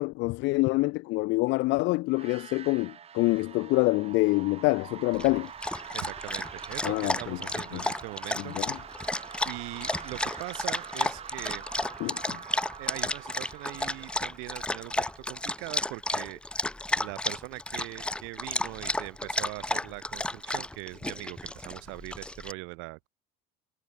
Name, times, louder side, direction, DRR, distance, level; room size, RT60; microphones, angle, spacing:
voice 1, 0.0-5.5 6.8-7.4 7.7-7.8 8.4-8.8 12.0-12.4, left 22 dB, 70° left, 1.2 m, -26 dB
sound 1, 2.1-15.8, right 8 dB, 30° right, 1.7 m, -45 dB
Dog, 5.1-22.5, left 1 dB, 5° left, 0.6 m, -33 dB
voice 2, 5.9-8.8 9.5-11.7 12.8-23.1, right 29 dB, 80° right, 6.8 m, -41 dB
cardioid pair, 135°, 20 cm